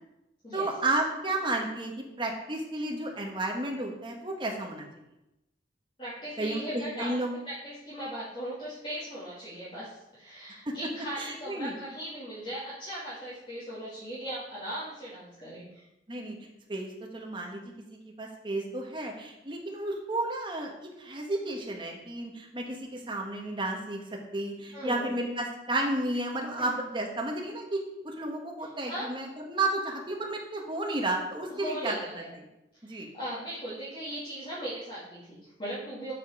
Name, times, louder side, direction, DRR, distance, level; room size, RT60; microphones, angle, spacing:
voice 1, 0.5-4.9 6.4-7.3 10.7-10.8 11.2-11.7 16.1-16.3 16.7-17.6 17.9-20.7 21.0-24.0 24.3-31.9 32.8-33.1, right 2 dB, 25° right, 0 dB, 1.3 m, -32 dB
voice 2, 6.0-7.2 7.4-15.8 24.7-25.1 26.5-26.7 28.6-29.1 31.5-32.3 32.8-36.1, right 1 dB, 30° left, -11 dB, 2.4 m, -38 dB
7.3 x 5.2 x 5.2 m, 0.90 s
head